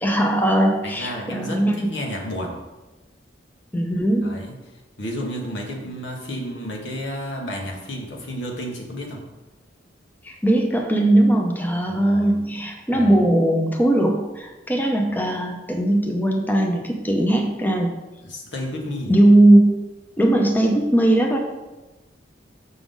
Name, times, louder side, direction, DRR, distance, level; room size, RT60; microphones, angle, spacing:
voice 1, 0.0-1.9 3.7-4.4 10.2-17.9 19.1-19.8 20.2-21.4, right 1 dB, 10° left, 2 dB, 0.7 m, -19 dB
voice 2, 0.8-2.6 4.2-9.2 11.9-12.4 12.9-13.2 18.2-19.1, equal, 85° left, 0 dB, 1.5 m, -32 dB
6.7 x 6.1 x 3.8 m, 1.1 s
head